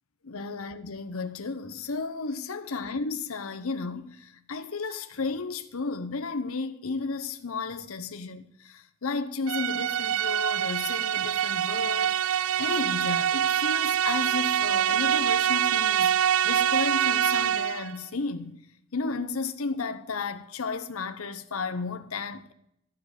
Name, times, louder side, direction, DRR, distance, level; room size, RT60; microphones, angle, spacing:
voice 1, 0.2-12.2 12.6-16.2 16.4-18.6 18.9-22.5, left 4 dB, 75° left, 0.8 m, -33 dB
sound 1, 9.5-17.9, right 10 dB, 70° right, 0.5 m, -25 dB
13.0 x 6.7 x 8.1 m
head